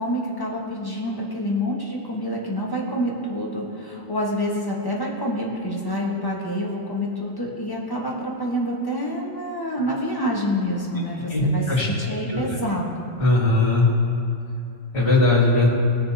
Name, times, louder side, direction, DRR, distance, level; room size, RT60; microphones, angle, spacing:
voice 1, 0.0-13.0, equal, 20° left, -3 dB, 1.3 m, -27 dB
voice 2, 11.3-11.9 12.3-12.4 13.2-13.9 14.9-15.7, left 2 dB, 35° left, -11 dB, 2.9 m, -18 dB
18.5 x 6.6 x 2.8 m, 2.6 s
omnidirectional pair, 1.4 m